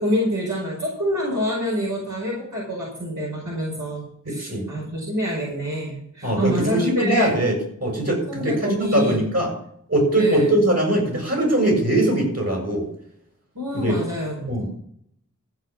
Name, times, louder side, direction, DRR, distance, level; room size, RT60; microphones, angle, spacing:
voice 1, 0.0-7.4 8.3-9.2 10.2-10.5 13.5-14.7, equal, 70° right, -5 dB, 5.2 m, -26 dB
voice 2, 4.2-4.6 6.2-7.5 7.8-9.5 9.9-12.9 13.7-13.9 14.5-14.7, right 1 dB, 55° right, 0 dB, 6.9 m, -21 dB
15.0 x 7.1 x 6.2 m, 0.67 s
wide cardioid pair, 40°, 31 cm